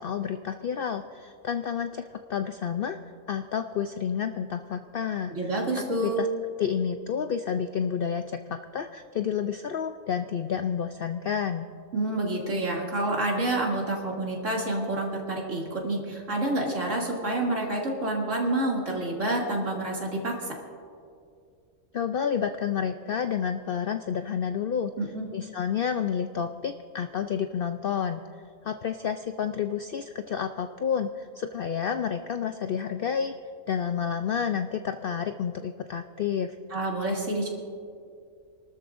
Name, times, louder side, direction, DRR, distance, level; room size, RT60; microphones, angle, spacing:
voice 1, 0.0-3.0 3.3-5.6 6.0-6.3 6.6-11.7 21.9-24.9 25.3-28.2 28.6-33.4 33.7-36.6, left 7 dB, 65° left, 8 dB, 0.5 m, -30 dB
voice 2, 5.3-6.2 11.9-20.5 25.0-25.3 36.7-37.5, right 2 dB, 65° right, -3 dB, 2.8 m, -28 dB
28.5 x 13.0 x 2.5 m, 2.3 s
omnidirectional pair, 1.4 m